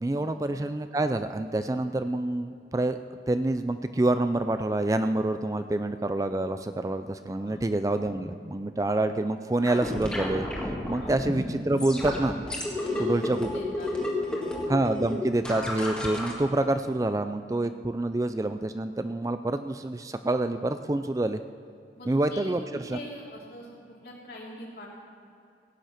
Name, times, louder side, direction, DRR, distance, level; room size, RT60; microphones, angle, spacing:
voice 1, 0.0-3.0 3.3-10.5 10.9-12.3 13.0-13.5 14.7-21.4 22.1-22.6 22.9-23.0, right 2 dB, 20° right, 9 dB, 0.3 m, -27 dB
sound 1, 9.6-16.3, left 1 dB, 5° left, 1.7 m, -32 dB
voice 2, 12.8-14.7 22.0-24.9, equal, 60° left, -4 dB, 3.2 m, -43 dB
16.5 x 9.2 x 5.8 m, 2.6 s
head